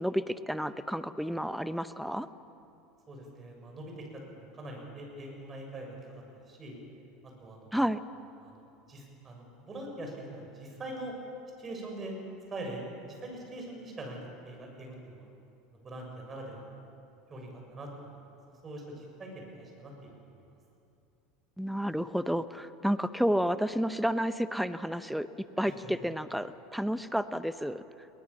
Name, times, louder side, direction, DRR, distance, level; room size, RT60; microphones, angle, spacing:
voice 1, 0.0-2.3 7.7-8.0 21.6-25.3 25.6-27.8, equal, ahead, 13 dB, 0.9 m, -31 dB
voice 2, 3.1-6.8 7.4-7.8 8.4-8.6 8.9-11.1 11.6-12.1 12.5-15.3 15.8-16.6 17.3-18.1 18.6-20.1 25.6-25.7, right 1 dB, 30° right, 1 dB, 7.0 m, -43 dB
21.5 x 19.5 x 7.1 m, 2.7 s
hypercardioid pair, 80°, 0 cm